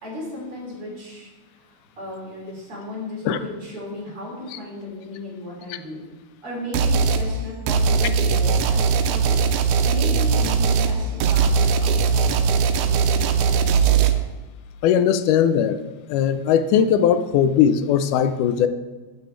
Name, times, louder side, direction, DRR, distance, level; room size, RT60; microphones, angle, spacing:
voice 1, 0.0-1.3 1.6-6.1 6.4-9.3 9.9-14.0, left 1 dB, 45° right, -4 dB, 4.0 m, -35 dB
sound 1, 6.7-7.3 7.7-14.1, right 5 dB, 85° right, 2.2 m, -19 dB
voice 2, 14.8-15.8 16.1-18.7, left 8 dB, 85° left, 11 dB, 2.1 m, -19 dB
9.4 x 8.7 x 4.5 m, 1.2 s
omnidirectional pair, 3.6 m